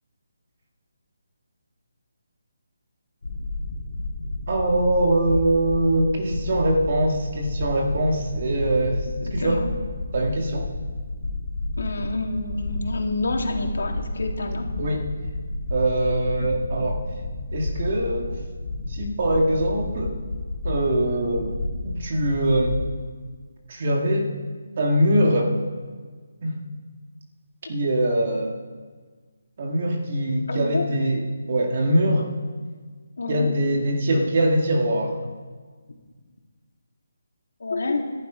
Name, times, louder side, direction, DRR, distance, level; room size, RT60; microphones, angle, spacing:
sound 1, 3.2-22.9, left 2 dB, 85° left, 2.9 m, -31 dB
voice 1, 4.5-9.6 10.1-10.7 14.8-15.0 15.7-17.0 17.5-18.4 18.9-20.2 20.6-21.6 21.8-22.8 23.7-24.3 24.8-25.6 26.4-26.6 27.7-28.6 29.6-32.3 33.3-35.2, right 1 dB, 30° right, 1 dB, 2.0 m, -23 dB
voice 2, 9.4-9.7 11.8-14.7 16.4-16.5 30.5-30.8 33.2-33.5 37.6-38.0, left 2 dB, 60° left, 1 dB, 3.1 m, -28 dB
24.0 x 11.5 x 5.1 m, 1.5 s
hypercardioid pair, 180°, 0 cm